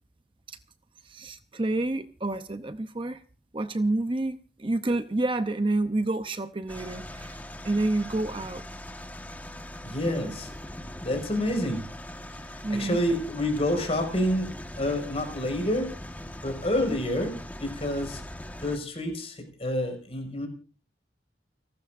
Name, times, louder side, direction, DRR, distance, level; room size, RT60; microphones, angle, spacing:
voice 1, 1.0-3.2 3.5-7.4 7.6-8.6 10.0-10.3 12.6-13.0, right 2 dB, 30° right, 10 dB, 0.7 m, -29 dB
sound 1, 6.7-18.8, left 1 dB, 10° left, 1.5 m, -41 dB
voice 2, 9.8-10.5 11.0-11.8 12.7-14.5 14.8-15.9 16.4-18.2 18.6-20.5, left 1 dB, 35° left, 4 dB, 5.6 m, -28 dB
30.0 x 12.5 x 2.6 m, 0.36 s
head